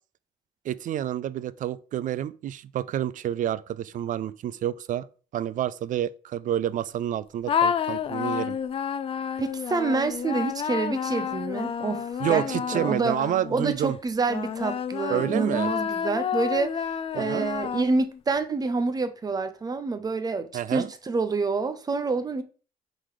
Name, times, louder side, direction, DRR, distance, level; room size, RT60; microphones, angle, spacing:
voice 1, 0.6-5.1 5.3-8.6 12.2-14.0 15.1-15.7 17.1-17.5 20.5-20.9, right 11 dB, 50° right, 0.4 m, -29 dB
sound 1, 7.5-13.7 14.3-18.2, left 7 dB, 35° left, 0.4 m, -30 dB
voice 2, 9.4-12.5 12.7-13.2 13.5-16.8 17.1-22.4, right 3 dB, 25° right, 0.8 m, -27 dB
4.9 x 3.9 x 4.8 m
cardioid pair, 110°, 17 cm